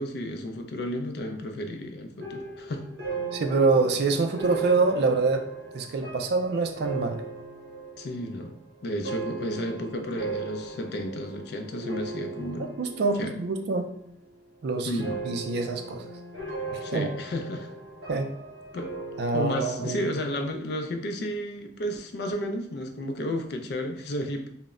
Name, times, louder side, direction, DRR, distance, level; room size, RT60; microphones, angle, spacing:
voice 1, 0.0-2.9 8.0-12.7 13.1-13.3 14.8-15.2 16.8-17.7 18.7-18.9 19.3-24.5, equal, 65° left, 5 dB, 0.4 m, -32 dB
sound 1, 2.2-13.7 14.0-14.5 15.0-20.3, right 3 dB, 80° right, 0.8 m, -38 dB
voice 2, 3.3-5.4 5.7-7.2 12.8-13.9 14.6-14.9 15.2-16.0 16.7-17.1 18.1-18.3 19.2-20.1, right 3 dB, 65° right, 5 dB, 0.3 m, -25 dB
2.0 x 2.0 x 3.5 m, 0.70 s
head